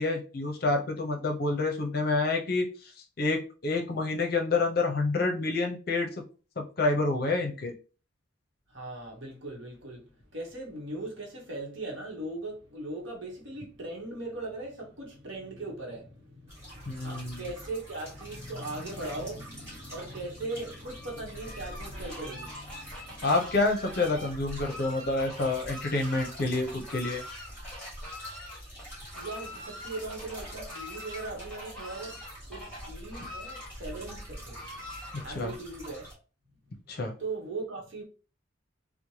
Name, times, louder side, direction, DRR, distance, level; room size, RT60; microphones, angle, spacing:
voice 1, 0.0-2.7 3.2-6.1 6.6-7.7 16.9-17.4 23.2-27.2 35.1-35.5 36.9-37.1, left 3 dB, 50° left, 0.6 m, -28 dB
voice 2, 8.7-23.3 29.1-32.2 32.5-36.1 36.6-36.7 37.2-38.0, right 2 dB, 70° right, 0.9 m, -39 dB
sound 1, 16.5-36.1, right 1 dB, 15° right, 1.3 m, -47 dB
Fowl, 20.8-35.6, left 1 dB, 5° left, 1.2 m, -44 dB
3.1 x 2.1 x 2.7 m
head